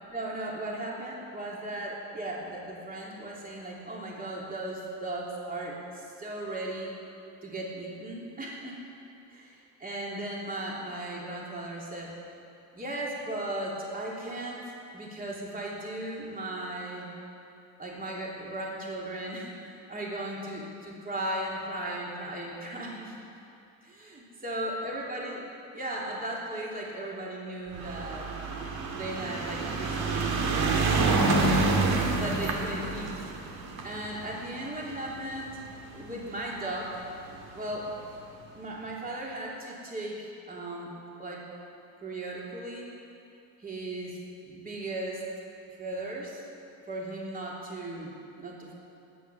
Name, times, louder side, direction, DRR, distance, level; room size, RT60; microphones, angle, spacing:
voice 1, 0.1-6.9 7.4-8.7 9.3-12.1 12.7-14.6 14.9-17.1 17.8-23.2 23.8-25.5 25.7-28.3 28.9-30.9 31.4-33.2 33.8-35.6 35.9-37.0 37.5-37.9 38.5-40.9 41.2-41.4 42.0-42.9 43.6-44.2 44.4-45.2 45.8-46.4 46.9-48.7, right 1 dB, 20° right, -3 dB, 3.1 m, -37 dB
sound 1, 27.7-36.2 37.0-37.1 37.3-37.4 37.7-37.8, right 3 dB, 70° right, 2.2 m, -28 dB
20.5 x 9.3 x 7.0 m, 2.7 s
cardioid pair, 130°, 38 cm